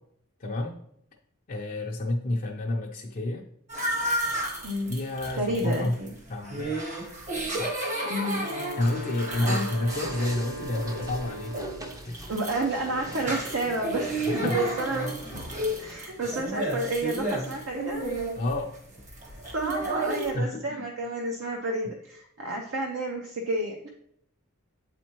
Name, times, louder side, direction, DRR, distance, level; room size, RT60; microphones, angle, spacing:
voice 1, 0.4-0.8 1.5-3.5 4.9-6.0 6.3-6.8 7.5-7.8 8.8-11.6 12.0-12.3 14.3-14.7 18.4-18.7 20.3-20.8, left 1 dB, 40° left, 0 dB, 0.5 m, -30 dB
sound 1, 3.7-20.3, right 1 dB, 35° right, 1.0 m, -33 dB
voice 2, 4.6-5.0 5.3-5.9 8.1-8.4 9.4-9.7 12.3-15.1 15.8-18.1 19.5-23.9, right 1 dB, 65° right, 1 dB, 0.7 m, -30 dB
Wind instrument woodwind instrument, 7.9-12.0, left 1 dB, 85° right, 2.0 m, -39 dB
sound 2, 9.9-16.0, right 1 dB, 15° right, 0.6 m, -43 dB
8.0 x 4.2 x 3.0 m, 0.71 s
head